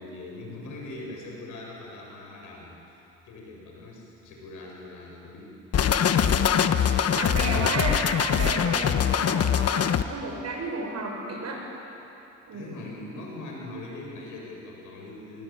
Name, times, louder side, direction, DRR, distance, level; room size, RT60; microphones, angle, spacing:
voice 1, 0.0-6.5 8.3-9.0 12.5-15.4, left 2 dB, 85° left, -1 dB, 7.3 m, -42 dB
sound 1, 5.7-10.0, left 8 dB, 55° left, 1.2 m, -23 dB
voice 2, 7.1-11.6 12.5-12.8, right 2 dB, 60° right, 0 dB, 7.0 m, -32 dB
26.0 x 20.5 x 8.8 m, 2.9 s
cardioid pair, 90°, 30 cm